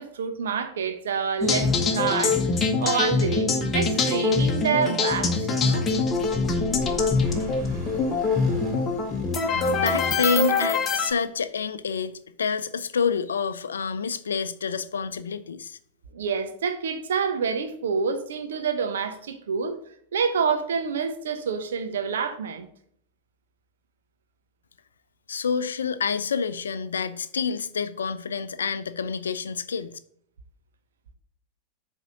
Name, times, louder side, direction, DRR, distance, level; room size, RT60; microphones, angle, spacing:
voice 1, 0.0-2.4 2.8-5.8 16.1-19.8 20.1-22.7, right 6 dB, 60° right, 1.0 m, -27 dB
sound 1, 1.4-11.1, left 4 dB, 20° left, 1.1 m, -24 dB
sound 2, 5.8-10.8, left 5 dB, 40° right, 2.5 m, -41 dB
sound 3, 7.2-10.0, right 2 dB, 15° right, 3.3 m, -46 dB
voice 2, 9.4-12.1 12.4-15.8 25.3-30.0, left 5 dB, 70° left, 0.5 m, -28 dB
8.0 x 3.6 x 5.8 m
figure-of-eight pair, 90°, 0 cm